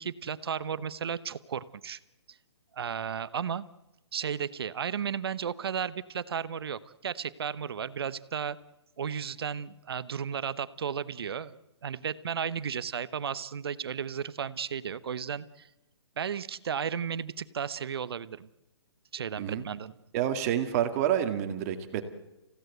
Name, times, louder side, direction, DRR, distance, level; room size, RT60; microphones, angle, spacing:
voice 1, 0.0-2.0 2.3-2.4 2.7-3.6 4.1-8.6 9.0-15.7 16.2-18.5 19.1-19.9, right 7 dB, 65° right, 17 dB, 1.0 m, -34 dB
voice 2, 20.1-22.0, right 10 dB, 35° right, 8 dB, 2.2 m, -28 dB
29.0 x 16.5 x 8.0 m, 0.99 s
hypercardioid pair, 135°, 14 cm